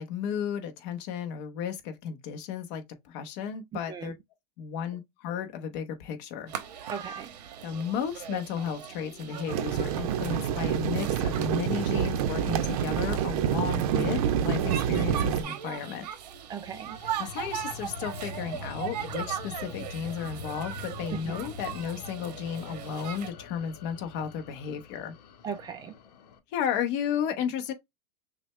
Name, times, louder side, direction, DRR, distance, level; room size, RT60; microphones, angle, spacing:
voice 1, 0.0-4.1 4.6-6.5 7.6-16.1 17.2-25.1 26.5-27.7, left 8 dB, 45° left, 1.0 m, -33 dB
sound 1, 6.5-23.3, right 9 dB, 90° right, 1.1 m, -39 dB
voice 2, 6.9-7.3 13.9-14.2 16.5-17.0 21.1-21.3 25.4-25.9, right 7 dB, 20° right, 0.4 m, -37 dB
sound 2, 9.5-15.4, right 9 dB, 60° right, 0.7 m, -27 dB
sound 3, 16.7-26.4, left 3 dB, 80° left, 1.0 m, -44 dB
6.1 x 2.3 x 3.1 m
supercardioid pair, 150°, 21 cm